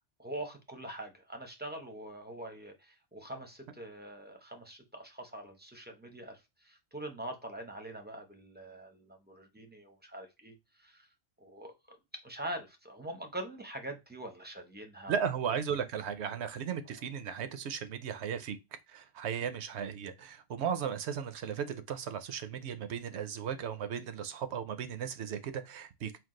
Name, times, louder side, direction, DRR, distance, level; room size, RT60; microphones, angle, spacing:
voice 1, 0.2-11.1 11.4-12.0 12.2-15.2, right 1 dB, 10° right, 0.5 m, -44 dB
voice 2, 15.1-18.6 18.9-26.1, right 7 dB, 70° right, 0.8 m, -36 dB
4.5 x 2.4 x 3.6 m
omnidirectional pair, 1.2 m